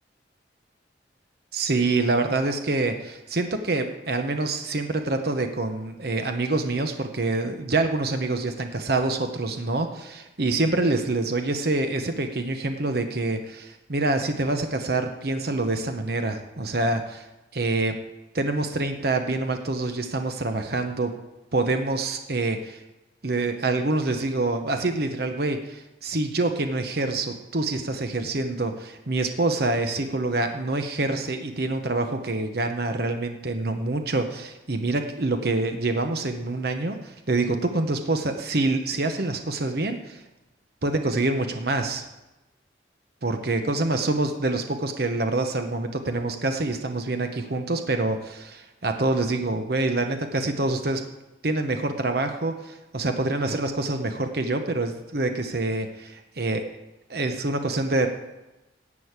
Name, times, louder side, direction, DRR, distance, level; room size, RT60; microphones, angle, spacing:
voice 1, 1.5-17.2 17.5-18.0 18.3-21.1 21.5-22.8 23.2-40.2 40.8-42.0 43.2-51.0 51.4-56.7 57.1-58.1, right 2 dB, 55° right, 6 dB, 1.0 m, -26 dB
11.0 x 5.4 x 8.2 m, 1.0 s
head